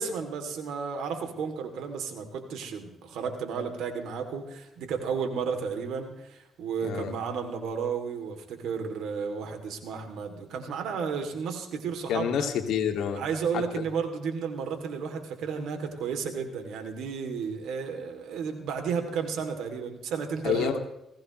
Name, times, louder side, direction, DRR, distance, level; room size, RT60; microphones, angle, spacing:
voice 1, 0.0-12.5 13.1-20.7, right 6 dB, 80° right, 5 dB, 2.9 m, -33 dB
voice 2, 12.1-13.2 20.4-20.8, left 8 dB, 80° left, 3 dB, 2.3 m, -28 dB
21.5 x 16.5 x 3.2 m, 0.87 s
cardioid pair, 90°, 0 cm